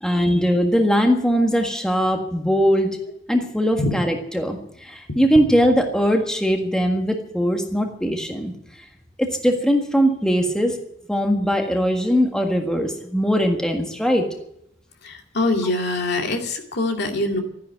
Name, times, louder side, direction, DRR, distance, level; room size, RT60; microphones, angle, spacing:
voice 1, 0.0-3.0 3.3-8.6 9.2-10.8 11.1-14.3, equal, 5° left, 3 dB, 1.6 m, -20 dB
voice 2, 15.0-17.4, left 2 dB, 60° left, 3 dB, 2.4 m, -23 dB
13.5 x 10.5 x 9.2 m, 0.74 s
head